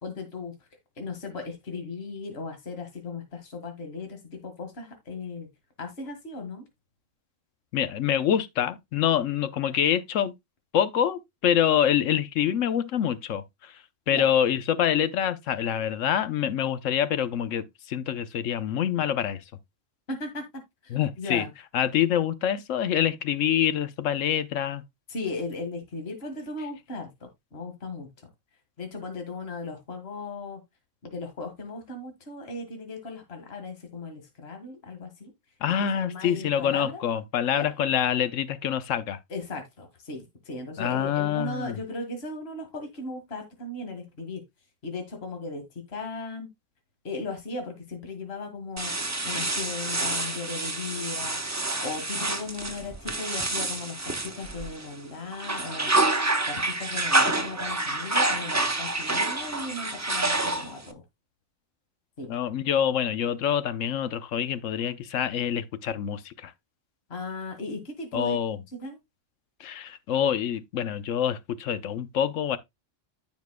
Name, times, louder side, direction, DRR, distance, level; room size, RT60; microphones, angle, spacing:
voice 1, 0.0-0.5 1.0-5.5 5.8-6.7 14.1-14.3 20.1-20.4 20.8-21.5 25.1-28.1 28.8-30.6 31.0-35.3 35.9-37.0 37.6-37.7 39.3-44.4 44.8-46.5 47.0-48.9 49.2-55.9 56.5-61.0 62.2-62.3 67.1-68.4 68.8-69.0, left 3 dB, 55° left, 2.0 m, -37 dB
voice 2, 7.7-10.3 10.7-13.8 14.1-19.4 20.9-21.4 21.7-24.8 35.6-39.2 40.8-41.8 62.3-66.5 68.1-68.6 69.6-72.6, left 9 dB, 75° left, 1.1 m, -26 dB
sound 1, 48.8-54.9 55.3-60.9, right 2 dB, 15° right, 0.7 m, -28 dB
14.5 x 5.2 x 2.2 m
omnidirectional pair, 1.3 m